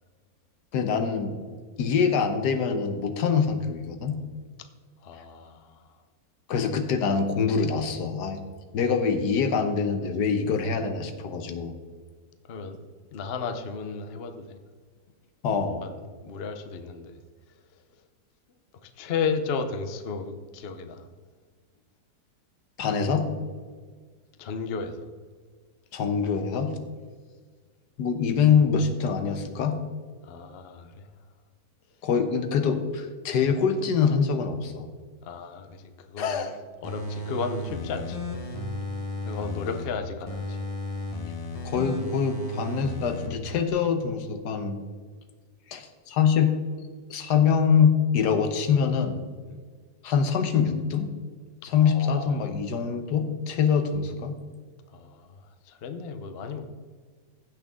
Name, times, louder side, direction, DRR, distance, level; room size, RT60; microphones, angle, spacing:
voice 1, 0.7-1.4 1.8-4.2 6.5-8.4 8.7-11.8 15.4-15.8 22.8-23.3 25.9-26.7 28.0-29.8 32.0-34.9 36.2-36.5 41.6-44.8 45.7-46.5 47.1-49.2 50.0-51.1 51.6-54.4, left 6 dB, 70° left, 7 dB, 1.5 m, -24 dB
voice 2, 5.0-5.8 12.5-12.8 13.1-14.6 15.8-17.2 18.8-21.0 24.4-25.1 30.2-31.1 35.2-35.8 36.1-36.5 36.8-38.3 39.2-40.6 49.5-49.6 51.6-52.5 54.9-56.6, left 5 dB, 50° left, 8 dB, 0.7 m, -34 dB
sound 1, 36.8-39.8 40.3-43.3 43.7-43.8, left 1 dB, 25° left, 1.0 m, -34 dB
16.0 x 6.2 x 3.6 m, 1.6 s
omnidirectional pair, 1.9 m